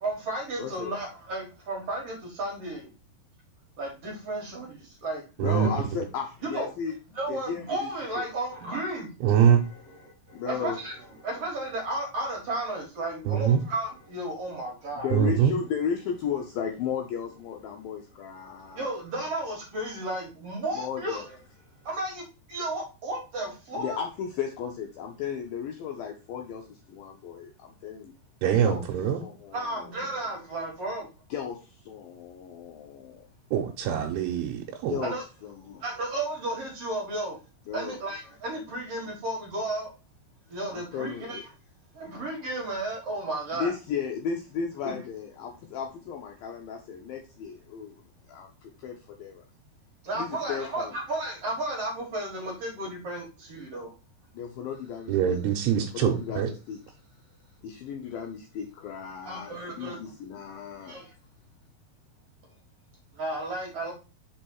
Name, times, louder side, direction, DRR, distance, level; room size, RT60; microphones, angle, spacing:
voice 1, 0.0-2.9 3.8-5.2 5.6-5.8 6.4-6.7 7.1-9.1 10.0-11.0 11.2-15.1 18.7-21.4 21.8-22.2 22.5-24.0 29.5-31.1 35.0-35.2 35.8-37.4 37.7-39.9 40.5-41.4 41.9-43.7 44.8-44.9 50.0-53.9 59.2-60.0 60.9-61.1 63.1-63.9, right 2 dB, 55° right, 1.8 m, -33 dB
voice 2, 0.6-0.9 5.4-6.9 7.3-7.9 8.2-8.3 10.3-10.8 14.9-18.9 20.7-21.3 23.7-28.2 28.6-28.8 29.2-29.9 31.3-33.2 34.9-35.1 35.4-35.8 37.7-38.0 40.7-41.4 43.5-48.0 48.3-49.4 50.2-50.9 54.3-55.4 56.0-56.8 57.6-61.0, left 7 dB, 75° left, 2.2 m, -35 dB
voice 3, 9.2-9.6 13.3-13.6 15.1-15.5 28.4-29.2 33.5-35.0 55.1-56.5, right 9 dB, 80° right, 2.7 m, -23 dB
5.4 x 4.5 x 4.5 m
omnidirectional pair, 4.8 m